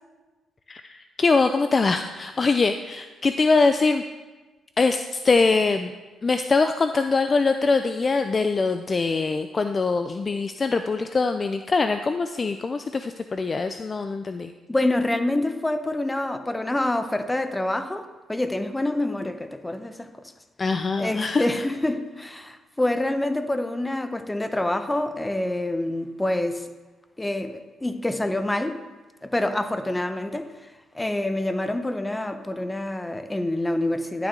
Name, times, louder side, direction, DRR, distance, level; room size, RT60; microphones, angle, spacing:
voice 1, 0.7-4.0 4.8-5.9 6.2-14.5 20.6-21.4, left 4 dB, 35° left, 0.4 m, -23 dB
voice 2, 14.7-20.2 21.0-26.7 27.2-28.8 29.2-34.3, left 1 dB, 10° left, 0.8 m, -27 dB
11.0 x 9.0 x 3.8 m
cardioid pair, 90°, 0 cm